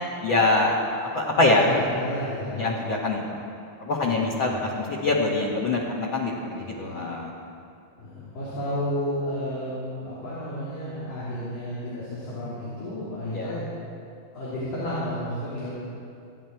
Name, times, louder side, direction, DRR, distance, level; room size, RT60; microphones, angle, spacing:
voice 1, 0.2-0.8 1.1-1.7 2.6-3.4 3.8-7.3 13.3-13.6, left 2 dB, 50° left, -3 dB, 1.7 m, -24 dB
voice 2, 1.5-2.6 4.0-4.6 6.6-7.1 8.0-13.6 14.3-15.7, left 1 dB, 85° left, -9 dB, 4.9 m, -32 dB
29.5 x 9.9 x 4.5 m, 2.5 s
omnidirectional pair, 3.7 m